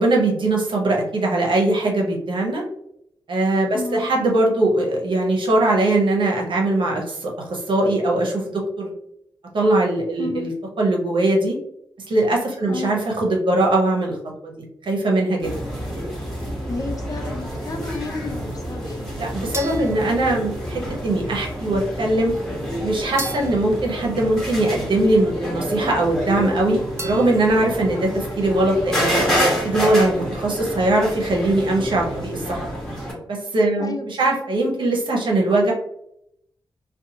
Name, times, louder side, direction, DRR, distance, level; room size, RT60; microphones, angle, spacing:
voice 1, 0.0-2.6 3.3-8.9 9.5-10.5 10.8-11.6 12.1-14.2 14.4-14.5 14.8-15.5 19.2-22.3 22.8-29.2 29.6-32.6 33.3-35.7, right 2 dB, 65° right, -1 dB, 0.9 m, -21 dB
voice 2, 3.7-4.1 10.2-10.5 12.7-13.0 16.7-19.1 24.7-25.0 33.8-34.4, left 3 dB, 40° left, 4 dB, 0.6 m, -32 dB
sound 1, 15.4-33.1, equal, 5° left, 1.3 m, -28 dB
sound 2, 19.5-21.0 23.2-25.0 27.0-28.1, right 2 dB, 30° right, 0.7 m, -36 dB
2.5 x 2.3 x 2.8 m, 0.75 s
supercardioid pair, 45°, 9 cm